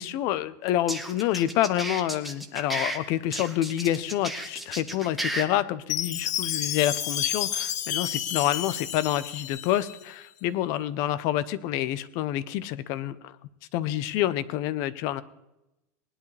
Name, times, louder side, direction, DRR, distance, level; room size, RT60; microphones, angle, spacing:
voice 1, 0.0-13.4 13.7-15.2, left 12 dB, 40° left, 15 dB, 0.7 m, -28 dB
sound 1, 0.7-3.0 3.3-5.4, right 1 dB, ahead, 1.0 m, -32 dB
Chime, 5.9-10.0, left 10 dB, 85° left, 1.1 m, -30 dB
20.0 x 11.0 x 3.3 m, 0.91 s
supercardioid pair, 170°, 9 cm